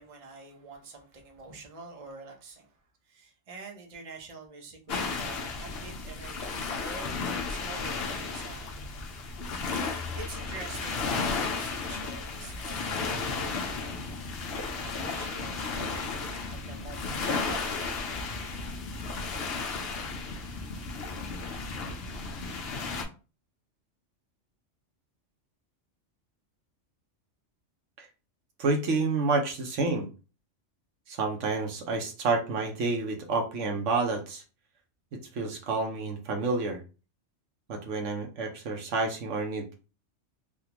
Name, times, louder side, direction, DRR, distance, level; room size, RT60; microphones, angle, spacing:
voice 1, 0.0-2.7 3.1-8.7 9.8-13.9 14.4-14.5 14.8-18.2, right 3 dB, 35° right, 0.7 m, -46 dB
sound 1, 4.9-23.0, left 4 dB, 60° left, 0.8 m, -34 dB
voice 2, 28.6-30.1 31.1-34.4 35.1-36.8 37.7-39.7, right 3 dB, 75° right, 1.1 m, -29 dB
3.5 x 2.4 x 2.9 m
omnidirectional pair, 1.3 m